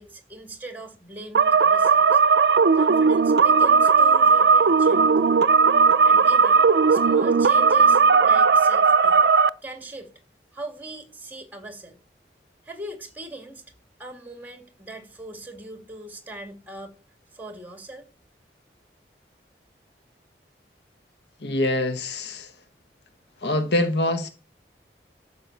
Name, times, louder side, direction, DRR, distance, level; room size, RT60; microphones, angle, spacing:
voice 1, 0.0-2.2 2.7-5.4 6.0-9.3 9.6-10.1 10.5-12.0 12.6-13.6 14.0-16.9 17.3-18.1, right 2 dB, 10° right, 2.1 m, -40 dB
sound 1, 1.3-9.5, right 5 dB, 70° right, 0.5 m, -17 dB
voice 2, 21.4-22.5 23.4-24.3, left 1 dB, 75° left, 1.1 m, -24 dB
12.5 x 5.6 x 8.0 m
head